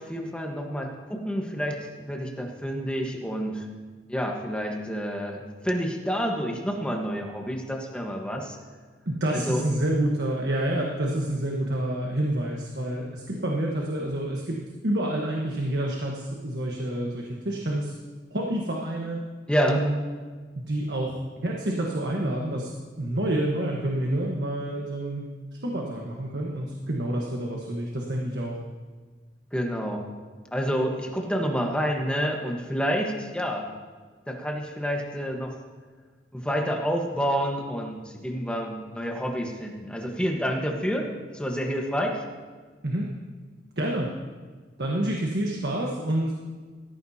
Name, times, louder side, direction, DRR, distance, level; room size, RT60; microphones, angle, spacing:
voice 1, 0.0-3.7 4.1-8.6 9.3-9.6 19.5-19.8 29.5-30.0 30.5-33.7 34.3-35.6 36.3-42.2, equal, 5° left, 1 dB, 1.3 m, -28 dB
voice 2, 9.1-17.9 18.3-19.2 19.7-20.0 20.6-22.7 23.0-25.2 25.6-28.6 42.8-43.1 43.8-44.1 44.8-46.4, right 1 dB, 75° right, -1 dB, 1.3 m, -28 dB
16.5 x 14.0 x 2.8 m, 1.5 s
head